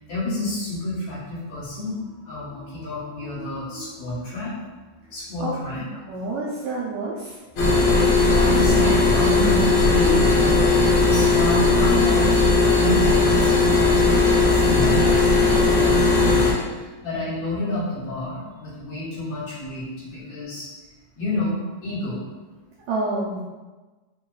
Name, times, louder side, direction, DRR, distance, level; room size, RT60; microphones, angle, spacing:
voice 1, 0.0-4.5 5.1-5.8 7.8-7.9 8.2-12.2 12.8-20.7 21.2-22.2, left 2 dB, 60° left, -10 dB, 2.6 m, -29 dB
voice 2, 6.1-7.3 22.9-23.4, right 2 dB, 80° right, -6 dB, 1.6 m, -28 dB
sound 1, 7.6-16.5, left 3 dB, 85° left, 1.1 m, -17 dB
5.7 x 2.3 x 3.8 m, 1.2 s
omnidirectional pair, 3.7 m